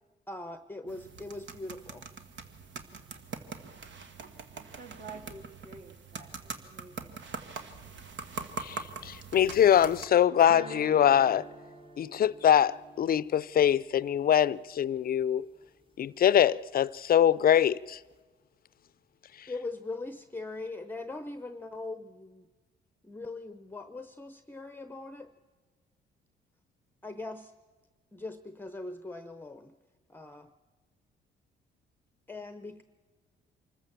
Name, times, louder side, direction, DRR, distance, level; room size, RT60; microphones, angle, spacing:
voice 1, 0.3-2.1 19.5-22.5 23.0-25.3 27.0-27.5 28.1-29.7 30.1-30.5 32.3-32.8, left 2 dB, 10° left, 0.8 m, -41 dB
sound 1, 0.9-10.1, right 5 dB, 65° right, 1.6 m, -43 dB
voice 2, 2.9-3.3 4.5-7.2, right 4 dB, 45° right, 2.6 m, -50 dB
voice 3, 8.6-11.5 12.0-15.4 16.0-18.0, left 10 dB, 50° left, 0.5 m, -23 dB
sound 2, 10.4-15.4, right 4 dB, 25° right, 1.5 m, -49 dB
25.0 x 14.5 x 7.3 m
cardioid pair, 90°, 20 cm